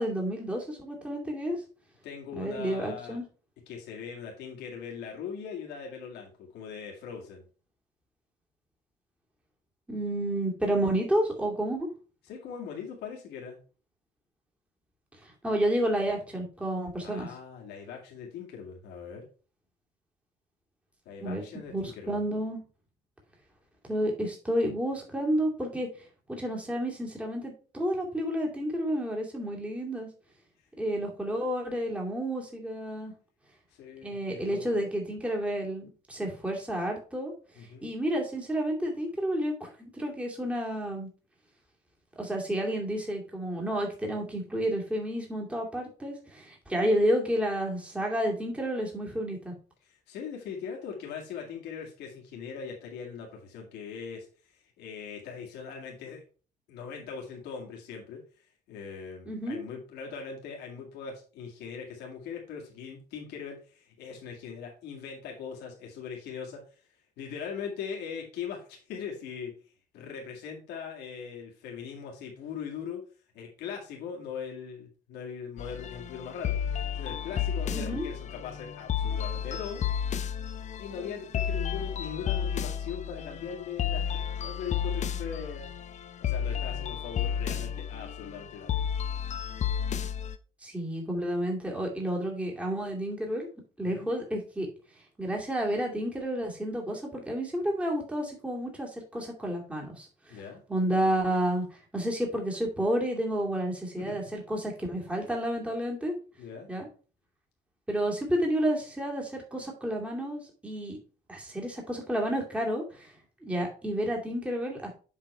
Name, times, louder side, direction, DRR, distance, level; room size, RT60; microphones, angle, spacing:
voice 1, 0.0-1.6 2.4-3.2 9.9-11.9 15.2-17.3 21.2-21.4 21.7-22.6 23.9-25.9 26.3-30.1 30.8-33.1 34.0-37.3 37.8-41.1 42.2-49.5 59.3-59.6 77.7-78.1 90.6-93.5 93.8-94.7 95.2-100.4 100.7-106.1 106.7-106.9 107.9-111.0 111.3-113.1 113.4-114.9, right 1 dB, 5° right, -1 dB, 2.3 m, -30 dB
voice 2, 2.0-3.2 3.7-7.4 12.2-13.6 17.0-19.2 21.1-22.2 33.7-34.8 37.5-37.9 49.8-54.3 54.5-56.2 56.7-66.6 67.2-69.5 69.9-73.0 73.3-76.6 76.9-79.8 80.8-85.7 86.2-88.9 93.8-94.1 100.3-100.6 104.0-104.2 106.4-106.7, left 6 dB, 80° left, -1 dB, 2.1 m, -40 dB
sound 1, 75.6-90.4, left 8 dB, 45° left, 0.6 m, -32 dB
7.5 x 4.1 x 4.4 m, 0.37 s
cardioid pair, 110°, 17 cm